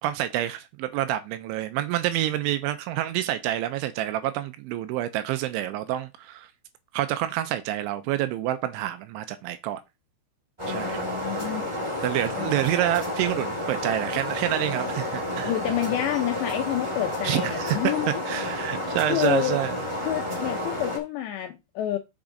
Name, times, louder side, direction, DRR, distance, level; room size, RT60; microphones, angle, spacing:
voice 1, 0.0-6.5 6.9-9.8 10.7-11.1 11.3-11.5 12.0-15.5 17.2-17.8 18.3-19.8, right 13 dB, 80° right, 2.9 m, -28 dB
sound 1, 10.6-21.0, left 1 dB, 20° right, 0.8 m, -30 dB
voice 2, 10.7-11.6 12.3-12.7 15.4-18.1 18.6-18.8 19.1-19.6 20.0-22.0, left 12 dB, 80° left, 2.6 m, -29 dB
7.2 x 5.9 x 3.8 m
omnidirectional pair, 5.7 m